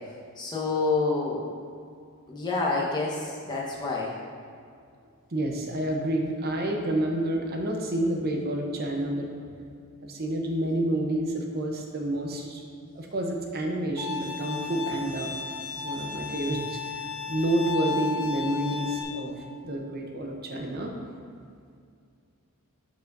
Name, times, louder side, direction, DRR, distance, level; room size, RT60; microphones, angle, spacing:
voice 1, 0.4-1.4 2.3-4.1, left 3 dB, 20° left, -4 dB, 1.1 m, -28 dB
voice 2, 5.3-9.3 10.0-12.6 12.9-15.3 15.7-16.8 17.3-19.3 19.6-20.9, right 1 dB, 45° right, 1 dB, 0.8 m, -29 dB
Bowed string instrument, 14.0-19.0, left 6 dB, 65° left, 0.7 m, -34 dB
11.0 x 4.8 x 2.6 m, 2.3 s
head